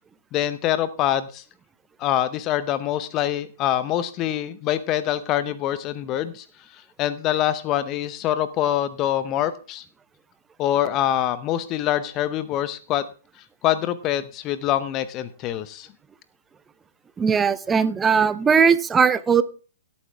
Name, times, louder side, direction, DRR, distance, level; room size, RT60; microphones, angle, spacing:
voice 1, 0.3-1.4 2.0-6.5 6.7-9.8 10.6-13.1 13.6-15.9, left 12 dB, 30° left, 14 dB, 0.8 m, -25 dB
voice 2, 17.2-19.4, right 6 dB, 15° right, 14 dB, 0.7 m, -19 dB
17.5 x 8.7 x 3.5 m, 0.36 s
figure-of-eight pair, 115°, 0 cm